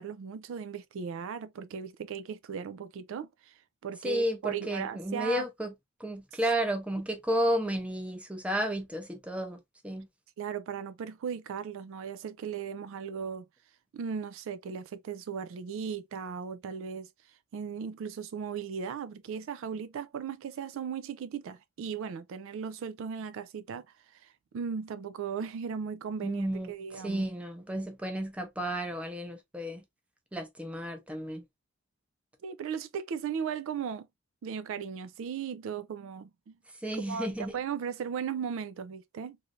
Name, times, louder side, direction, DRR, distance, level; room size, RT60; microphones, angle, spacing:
voice 1, 0.0-3.5 3.8-5.5 10.4-13.5 13.9-17.1 17.5-23.9 24.1-27.3 32.4-34.1 34.4-36.6 37.1-39.4, right 7 dB, 65° right, 0.3 m, -37 dB
voice 2, 4.0-5.7 6.0-10.1 26.2-29.8 30.3-31.4 36.8-37.6, equal, 5° right, 0.7 m, -32 dB
3.1 x 2.6 x 2.5 m
head